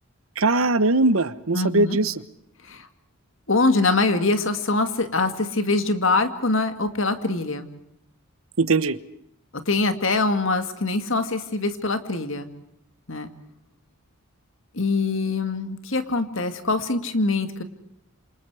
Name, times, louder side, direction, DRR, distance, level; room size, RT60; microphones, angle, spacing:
voice 1, 0.4-2.1 8.6-9.0, right 2 dB, 75° right, 14 dB, 1.1 m, -20 dB
voice 2, 1.5-2.0 2.6-2.9 3.5-7.7 9.5-12.5 13.1-13.3 14.7-17.6, left 3 dB, 60° left, 8 dB, 2.3 m, -23 dB
28.5 x 26.5 x 4.9 m, 0.74 s
head